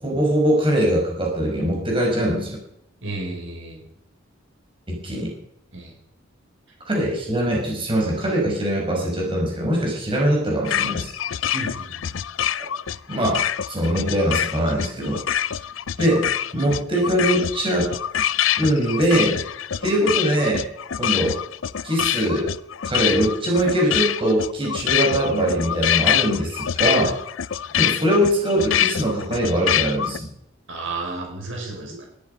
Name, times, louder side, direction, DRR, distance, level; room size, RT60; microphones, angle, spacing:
voice 1, 0.0-2.6 4.9-5.3 6.9-11.1 12.6-12.7 13.1-15.2 16.0-16.2 16.5-17.9 18.6-19.4 19.8-20.6 21.0-21.3 21.8-22.5 22.9-27.2 27.8-30.3, right 1 dB, 25° right, -1 dB, 5.4 m, -22 dB
voice 2, 3.0-3.8 5.7-5.9 11.5-12.2 19.7-19.8 30.7-32.0, right 2 dB, 75° right, 1 dB, 6.0 m, -32 dB
sound 1, 10.6-30.2, left 10 dB, 80° left, 0.5 m, -25 dB
19.0 x 13.5 x 5.4 m, 0.75 s
head